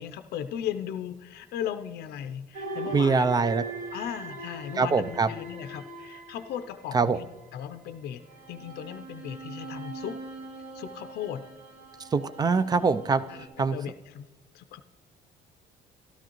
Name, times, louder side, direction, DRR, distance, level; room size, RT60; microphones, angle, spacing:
voice 1, 0.0-3.3 3.9-10.2 10.7-11.4 13.3-14.3 14.5-14.8, left 9 dB, 70° left, 9 dB, 0.5 m, -37 dB
sound 1, 2.5-7.3 8.2-13.5, right 2 dB, 85° right, 4.0 m, -41 dB
voice 2, 2.9-3.6 4.8-5.3 6.9-7.2 12.1-13.2 13.6-13.8, right 4 dB, 25° right, 15 dB, 0.4 m, -23 dB
13.0 x 12.5 x 3.0 m, 1.2 s
cardioid pair, 110°, 17 cm